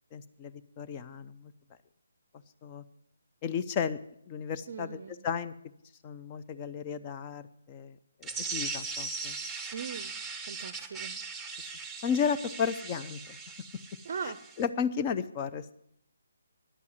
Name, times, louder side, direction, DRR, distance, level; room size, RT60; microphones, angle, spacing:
voice 1, 0.1-1.5 2.6-2.8 3.4-4.0 4.3-5.5 6.0-8.0 8.2-9.4 12.0-13.4 14.6-15.7, left 7 dB, 25° left, 11 dB, 0.7 m, -33 dB
voice 2, 4.7-5.2 9.7-10.1 10.5-11.2 14.0-14.5, right 6 dB, 50° right, 15 dB, 0.5 m, -39 dB
sound 1, 8.2-14.6, right 4 dB, 5° right, 0.9 m, -39 dB
11.0 x 8.4 x 9.4 m, 0.76 s
figure-of-eight pair, 145°, 0 cm